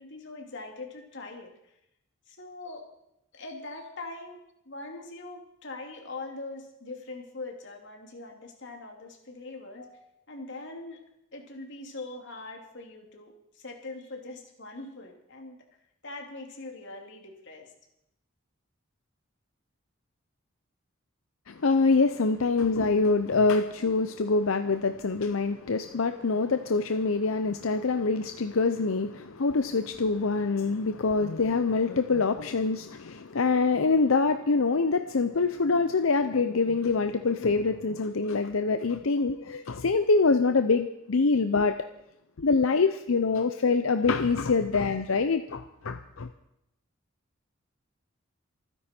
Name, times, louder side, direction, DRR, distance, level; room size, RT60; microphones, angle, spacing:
voice 1, 0.0-1.5 2.3-2.8 3.3-4.4 4.6-9.9 10.3-11.0 11.3-15.6 16.0-17.7, left 2 dB, 60° left, 2 dB, 2.8 m, -42 dB
voice 2, 21.5-41.8 42.4-46.3, left 4 dB, 90° left, 8 dB, 0.7 m, -25 dB
25.0 x 10.0 x 4.5 m, 0.84 s
head